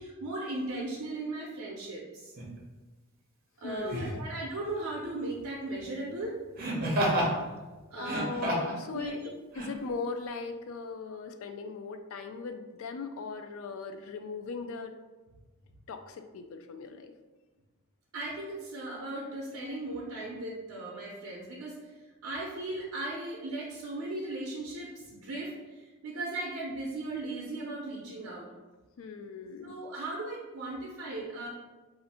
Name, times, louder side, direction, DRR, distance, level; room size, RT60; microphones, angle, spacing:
voice 1, 0.0-2.3 3.6-6.4 7.9-8.3 8.9-9.1 18.1-21.9 22.2-28.5 29.6-31.5, right 2 dB, 85° right, -3 dB, 0.5 m, -37 dB
Laughter, 2.4-2.5 3.8-4.2 6.6-7.3 8.0-8.8 9.5-9.7, right 1 dB, 40° right, 0.7 m, -29 dB
voice 2, 3.6-4.2 8.0-9.2 9.5-14.9 15.9-17.1 29.0-29.8, left 4 dB, 70° left, 7 dB, 0.3 m, -39 dB
2.5 x 2.5 x 4.1 m, 1.2 s
head